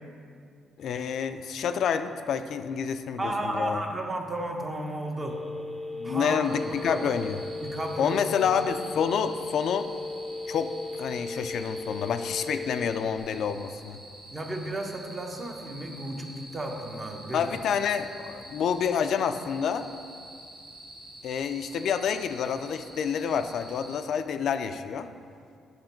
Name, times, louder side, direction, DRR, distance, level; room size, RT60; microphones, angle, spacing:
voice 1, 0.8-3.8 5.9-7.4 8.0-9.9 10.5-14.0 17.3-19.9 21.2-25.1, left 7 dB, 70° left, 9 dB, 0.3 m, -28 dB
voice 2, 3.2-5.4 6.0-6.4 6.7-7.0 7.6-8.5 14.3-17.4, right 1 dB, 25° right, 2 dB, 1.0 m, -33 dB
Telephone, 5.2-13.2, left 3 dB, 15° left, 0.6 m, -36 dB
sound 1, 6.4-24.0, right 1 dB, 75° right, 1.6 m, -47 dB
7.7 x 5.9 x 4.4 m, 2.3 s
cardioid pair, 90°, 0 cm